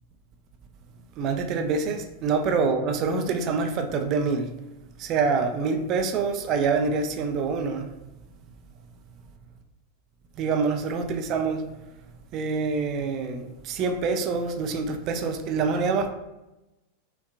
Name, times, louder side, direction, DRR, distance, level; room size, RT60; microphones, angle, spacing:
voice 1, 1.2-4.5 5.0-7.9 10.4-11.6 12.3-16.1, right 4 dB, 35° right, 0.4 m, -26 dB
5.4 x 2.2 x 2.4 m
figure-of-eight pair, 90°, 0 cm